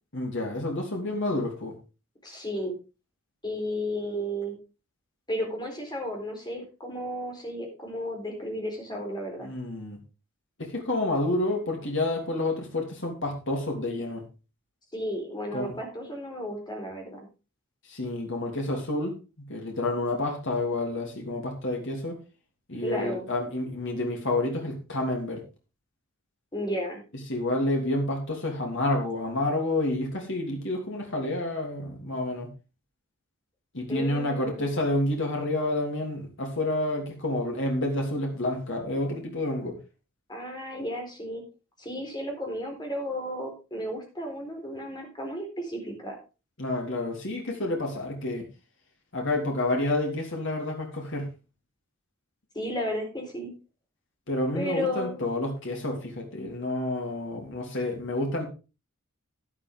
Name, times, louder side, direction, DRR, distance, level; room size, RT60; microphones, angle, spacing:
voice 1, 0.1-1.7 9.4-10.0 10.6-14.2 15.5-15.7 17.9-19.1 19.4-22.2 22.7-25.4 27.3-32.5 33.7-39.8 46.6-48.5 49.1-51.3 54.3-58.5, left 2 dB, 60° left, 1 dB, 3.1 m, -29 dB
voice 2, 2.2-2.8 3.4-4.6 5.3-9.5 14.9-17.3 22.8-23.3 26.5-27.0 33.9-34.6 40.3-41.4 41.8-46.2 52.5-53.5 54.5-55.2, equal, 20° left, 2 dB, 4.1 m, -33 dB
11.0 x 11.0 x 3.7 m, 0.31 s
head